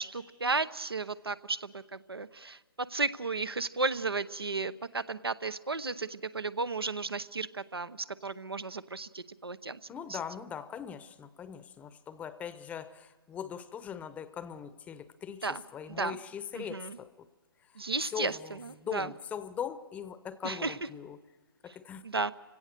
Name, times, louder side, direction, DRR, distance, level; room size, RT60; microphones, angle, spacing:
voice 1, 0.0-9.8 10.1-10.2 15.4-15.6 15.9-16.2 16.5-17.0 17.8-19.1 20.4-20.8 22.0-22.3, right 3 dB, 90° right, 0.9 m, -34 dB
voice 2, 9.9-17.1 17.7-17.8 18.1-21.2 21.6-22.0, left 8 dB, 10° left, 0.7 m, -41 dB
30.0 x 17.0 x 6.7 m
figure-of-eight pair, 135°, 12 cm